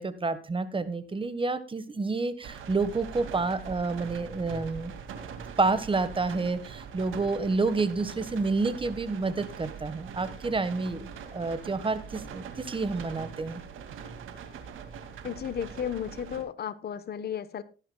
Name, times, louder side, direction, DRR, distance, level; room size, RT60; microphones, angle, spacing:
voice 1, 0.0-4.9 5.6-13.6, right 3 dB, 25° right, 13 dB, 1.4 m, -29 dB
sound 1, 2.4-16.4, right 7 dB, 85° right, 2.3 m, -42 dB
voice 2, 15.2-17.6, left 9 dB, 55° left, 14 dB, 1.1 m, -34 dB
18.0 x 10.5 x 2.3 m, 0.34 s
cardioid pair, 90°, 20 cm